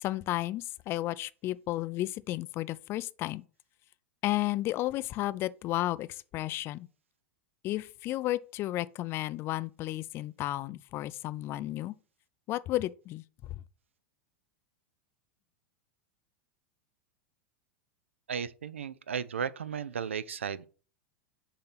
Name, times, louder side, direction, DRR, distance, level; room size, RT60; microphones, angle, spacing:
voice 1, 0.0-3.4 4.2-6.9 7.6-11.9 12.5-13.6, left 16 dB, 40° left, 0.3 m, -33 dB
voice 2, 18.3-20.7, right 7 dB, 85° right, 0.4 m, -35 dB
6.8 x 2.9 x 5.7 m
hypercardioid pair, 95°, 7 cm